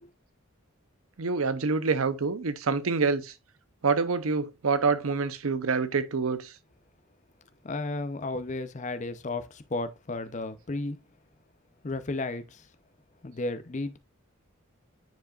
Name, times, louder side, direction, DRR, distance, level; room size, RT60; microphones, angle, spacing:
voice 1, 1.2-3.3 3.8-6.5, right 4 dB, 90° right, 0.7 m, -26 dB
voice 2, 7.6-11.0 11.8-12.7 13.2-14.0, left 2 dB, 35° left, 0.6 m, -33 dB
9.3 x 4.9 x 2.4 m
head